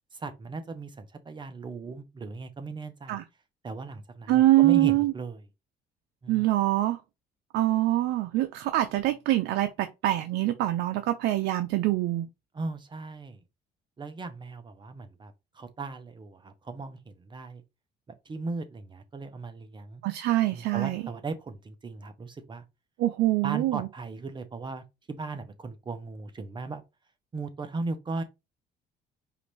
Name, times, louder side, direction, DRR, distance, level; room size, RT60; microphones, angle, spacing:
voice 1, 0.1-3.2 3.6-5.4 6.2-6.5 12.5-13.4 14.0-17.6 18.1-20.0 20.5-22.6 23.4-26.8 27.3-28.2, right 3 dB, 25° right, 0.7 m, -37 dB
voice 2, 4.3-5.1 6.3-7.0 7.5-12.3 20.0-21.0 23.0-23.9, right 15 dB, 80° right, 0.5 m, -24 dB
5.0 x 2.5 x 3.1 m
cardioid pair, 110°, 17 cm